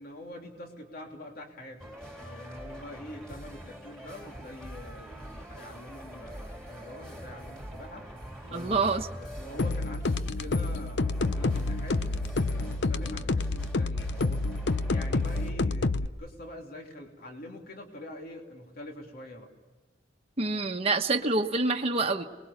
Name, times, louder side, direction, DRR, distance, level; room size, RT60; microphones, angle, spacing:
voice 1, 0.0-8.1 8.4-8.9 9.1-14.4 14.9-19.5, left 1 dB, 55° left, 2 dB, 3.2 m, -45 dB
sound 1, 1.8-15.5, equal, 5° left, 3.5 m, -44 dB
voice 2, 8.5-9.1 20.4-22.2, right 3 dB, 35° right, 2 dB, 1.2 m, -26 dB
sound 2, 9.6-16.1, left 3 dB, 70° left, 0.7 m, -28 dB
28.0 x 21.0 x 7.0 m, 1.3 s
head